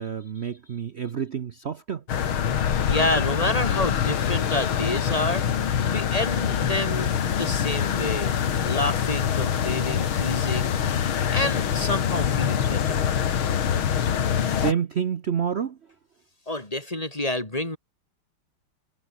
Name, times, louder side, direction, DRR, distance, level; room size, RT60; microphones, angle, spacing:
voice 1, 0.0-2.0 14.4-15.8, right 8 dB, 80° right, 0.5 m, -28 dB
sound 1, 2.1-14.7, left 8 dB, 75° left, 2.4 m, -24 dB
voice 2, 2.9-5.5 5.9-8.4 8.6-10.8 11.3-13.1 16.5-17.8, left 1 dB, 15° left, 3.7 m, -29 dB
omnidirectional pair, 2.3 m